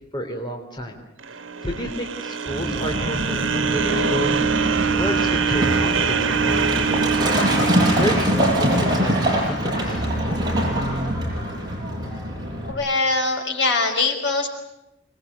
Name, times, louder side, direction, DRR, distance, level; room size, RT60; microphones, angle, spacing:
voice 1, 0.1-1.0 1.6-4.5 4.9-7.3 7.8-10.0, equal, 25° left, 2 dB, 3.6 m, -30 dB
sound 1, 1.2-9.5, right 6 dB, 85° right, 1.5 m, -24 dB
Truck, 2.5-12.7, equal, 20° right, 7.4 m, -24 dB
voice 2, 12.7-14.5, left 3 dB, 65° left, 4 dB, 5.7 m, -22 dB
26.0 x 21.5 x 9.7 m, 0.86 s
head